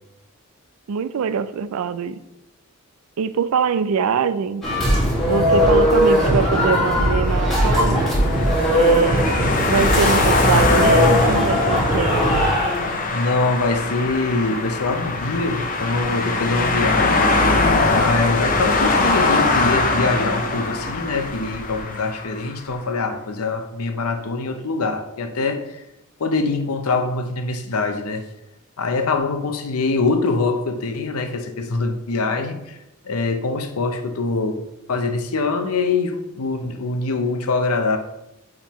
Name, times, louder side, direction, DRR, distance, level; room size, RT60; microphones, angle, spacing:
voice 1, 0.9-2.2 3.2-4.6 5.2-8.1 8.7-9.4 9.7-12.3, right 6 dB, 75° right, 0.4 m, -23 dB
sound 1, 4.6-12.9, equal, ahead, 1.7 m, -19 dB
sound 2, 7.0-22.4, left 3 dB, 35° left, 0.6 m, -22 dB
voice 2, 13.1-17.3 17.9-25.8 26.2-28.2 28.8-32.8 33.1-34.6 34.9-38.0, left 3 dB, 75° left, 0.7 m, -23 dB
8.6 x 3.7 x 3.0 m
head